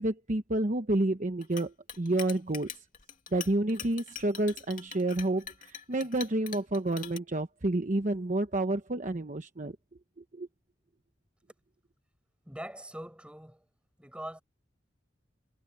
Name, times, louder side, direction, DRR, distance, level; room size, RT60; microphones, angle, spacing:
voice 1, 0.0-2.7 3.3-9.8 10.3-10.5, right 2 dB, 45° right, 1.0 m, -29 dB
Chink clink, 1.4-7.2, left 8 dB, 50° left, 2.5 m, -43 dB
voice 2, 12.4-13.7 14.0-14.4, right 1 dB, 5° right, 7.9 m, -42 dB
head